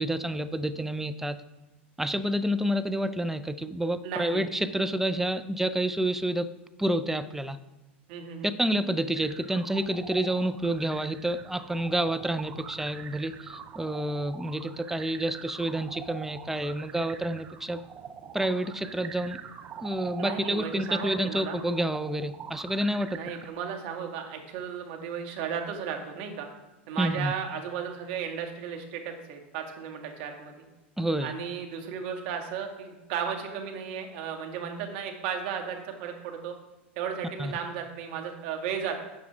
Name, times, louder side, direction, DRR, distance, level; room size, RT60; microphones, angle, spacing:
voice 1, 0.0-1.4 2.0-6.5 6.8-7.6 8.6-17.8 18.3-19.4 19.8-23.2 27.0-27.3 31.0-31.3 37.4-37.5, right 1 dB, 5° right, 11 dB, 0.6 m, -29 dB
voice 2, 4.0-4.4 8.1-8.5 20.2-21.6 23.1-26.5 26.9-30.7 31.2-36.6 37.0-39.0, right 7 dB, 60° right, 3 dB, 2.0 m, -35 dB
sound 1, 9.1-23.5, right 7 dB, 30° right, 0.9 m, -44 dB
12.0 x 7.5 x 3.6 m, 1.1 s
hypercardioid pair, 95°, 6 cm